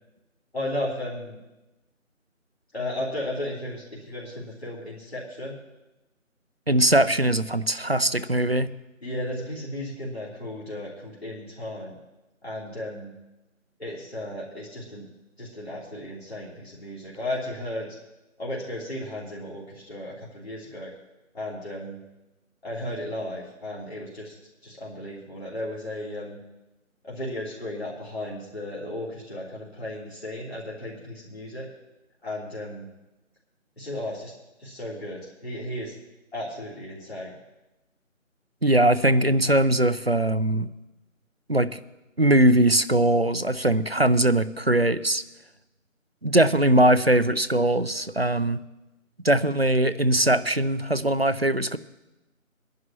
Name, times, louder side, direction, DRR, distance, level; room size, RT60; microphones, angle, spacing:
voice 1, 0.5-1.4 2.7-5.5 9.0-11.9 12.4-13.1 13.8-15.1 15.4-18.0 18.4-20.9 21.3-22.0 22.6-24.3 24.6-26.4 27.0-31.7 32.2-32.9 33.8-34.3 34.6-35.9 36.3-37.3, left 1 dB, 50° left, -7 dB, 3.4 m, -34 dB
voice 2, 6.7-8.7 38.6-40.7 41.5-41.8 42.2-45.2 46.2-48.6 49.2-51.8, right 1 dB, 50° right, 15 dB, 0.5 m, -21 dB
23.0 x 11.0 x 2.9 m, 1.0 s
figure-of-eight pair, 180°, 41 cm